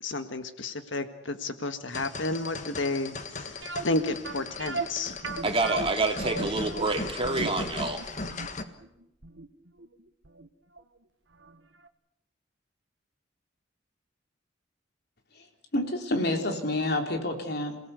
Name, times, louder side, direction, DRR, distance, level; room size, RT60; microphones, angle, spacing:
voice 1, 0.0-5.2, left 2 dB, 75° left, 9 dB, 1.7 m, -32 dB
sound 1, 1.9-8.6, left 3 dB, 40° left, 1.6 m, -38 dB
sound 2, 3.6-10.5 10.8-10.9 11.4-11.6 11.8-11.9, right 3 dB, 70° right, 1.4 m, -37 dB
voice 2, 5.4-8.0, right 3 dB, 30° right, 4 dB, 3.0 m, -27 dB
voice 3, 15.7-17.8, left 1 dB, 55° left, 4 dB, 3.7 m, -28 dB
27.5 x 18.0 x 8.3 m, 0.83 s
head